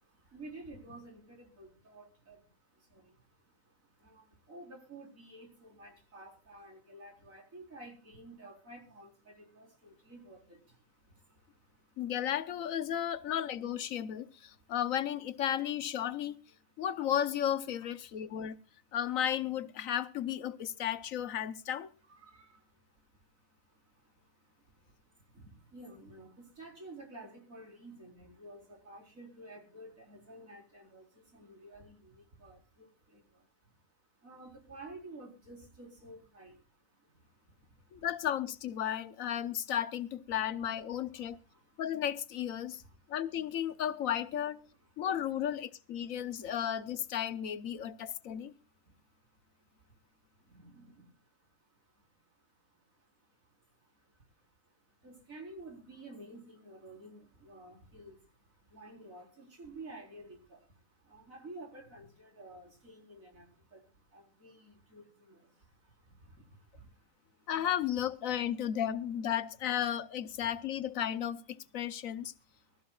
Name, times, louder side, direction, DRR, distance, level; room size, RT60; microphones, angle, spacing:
voice 1, 0.0-12.1 14.2-14.7 16.6-16.8 17.8-19.0 22.0-38.1 40.9-41.8 42.6-43.2 44.7-45.1 46.0-46.5 48.1-67.5 70.4-70.5 71.9-72.0 72.4-72.8, right 2 dB, 85° right, 4.7 m, -53 dB
voice 2, 12.0-16.4 16.8-18.6 18.9-21.9 37.9-41.4 41.8-42.8 43.1-44.6 45.0-48.5 67.5-72.3, left 10 dB, 80° left, 1.3 m, -34 dB
23.5 x 14.0 x 2.4 m
omnidirectional pair, 1.4 m